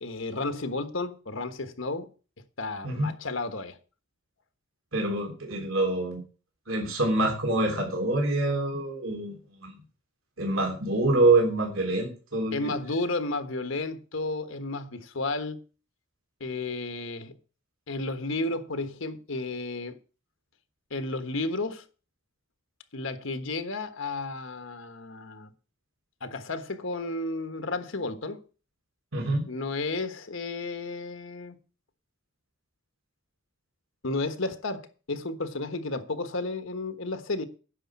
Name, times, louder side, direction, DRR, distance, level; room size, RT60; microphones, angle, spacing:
voice 1, 0.0-2.1 2.6-3.8 12.5-15.6 16.4-17.4 17.9-20.0 20.9-21.8 22.9-25.5 26.2-28.4 29.5-31.5 34.0-37.4, left 2 dB, 70° left, 1.3 m, -32 dB
voice 2, 4.9-6.2 6.7-9.3 9.6-9.7 10.4-12.7 29.1-29.4, right 2 dB, 75° right, 3.3 m, -25 dB
10.0 x 6.4 x 8.6 m
head